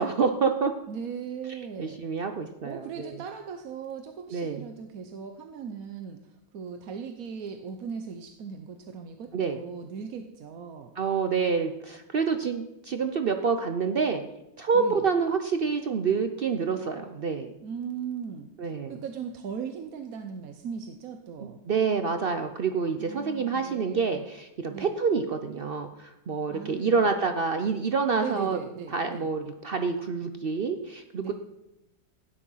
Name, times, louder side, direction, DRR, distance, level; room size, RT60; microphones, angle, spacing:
voice 1, 0.0-0.7 1.8-3.2 4.3-4.6 9.3-9.6 11.0-14.2 14.6-17.5 18.6-19.0 21.7-28.6 28.9-31.3, right 5 dB, 80° right, 7 dB, 0.5 m, -27 dB
voice 2, 0.9-2.0 2.6-10.9 14.7-15.1 17.6-21.6 23.0-24.3 24.7-24.9 26.5-27.1 28.2-29.4 31.2-31.3, right 6 dB, 55° right, 6 dB, 1.2 m, -38 dB
15.5 x 9.9 x 5.6 m, 0.93 s
omnidirectional pair, 2.0 m